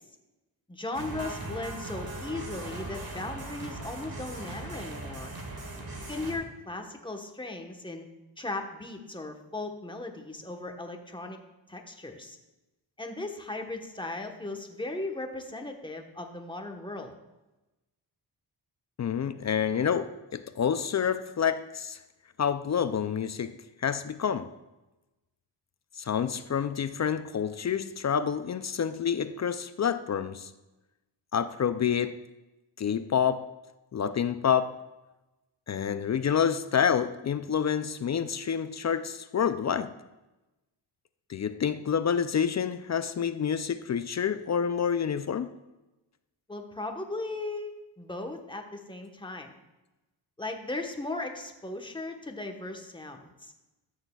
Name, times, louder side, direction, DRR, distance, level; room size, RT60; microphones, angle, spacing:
voice 1, 0.7-5.3 6.1-8.1 8.4-11.4 11.7-12.4 13.0-17.1 46.5-47.7 48.0-49.5 50.4-53.5, left 2 dB, 10° left, 3 dB, 1.1 m, -37 dB
sound 1, 0.9-6.4, right 2 dB, 50° right, 1.7 m, -39 dB
voice 2, 19.0-22.0 22.4-23.5 23.8-24.5 26.0-30.5 31.3-32.2 32.8-33.5 33.9-34.7 35.7-39.9 41.3-45.5, left 7 dB, 40° left, 12 dB, 0.4 m, -28 dB
13.0 x 6.5 x 2.3 m, 1.0 s
cardioid pair, 55°, 46 cm